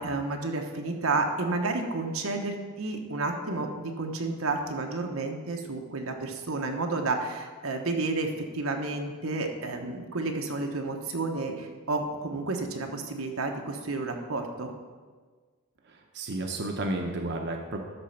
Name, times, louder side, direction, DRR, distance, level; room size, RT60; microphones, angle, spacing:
voice 1, 0.0-14.7, right 3 dB, 90° right, 3 dB, 1.1 m, -31 dB
voice 2, 15.9-17.8, right 2 dB, 55° right, 2 dB, 0.8 m, -32 dB
12.5 x 4.3 x 5.8 m, 1.5 s
head